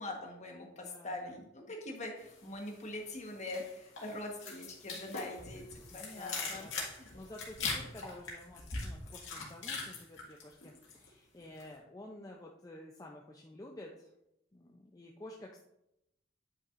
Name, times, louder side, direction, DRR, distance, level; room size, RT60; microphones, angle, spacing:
voice 1, 0.0-6.7 7.0-7.1, left 2 dB, 40° left, 1 dB, 1.3 m, -43 dB
voice 2, 0.6-1.4 5.9-14.1 14.5-15.6, left 1 dB, 20° left, -1 dB, 0.5 m, -51 dB
sound 1, 2.3-2.9 3.2-11.1 11.4-11.7, left 4 dB, 90° left, 2.0 m, -41 dB
9.5 x 5.8 x 2.5 m, 0.84 s
head